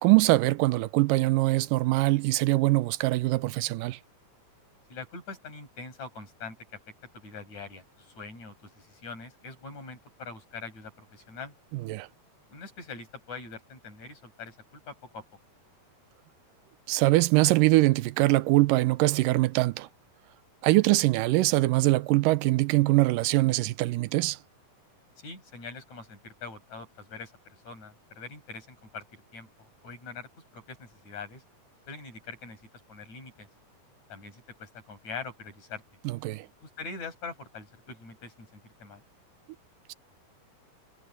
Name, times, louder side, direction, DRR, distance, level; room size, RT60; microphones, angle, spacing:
voice 1, 0.0-4.0 11.7-12.1 16.9-19.9 20.6-24.4 36.1-36.5, right 19 dB, 80° right, 2.2 m, -23 dB
voice 2, 4.9-6.6 7.1-11.5 12.5-15.2 25.2-31.4 31.9-32.6 32.9-33.5 34.1-35.8 36.6-39.0, left 4 dB, 55° left, 8.3 m, -43 dB
omnidirectional pair, 3.9 m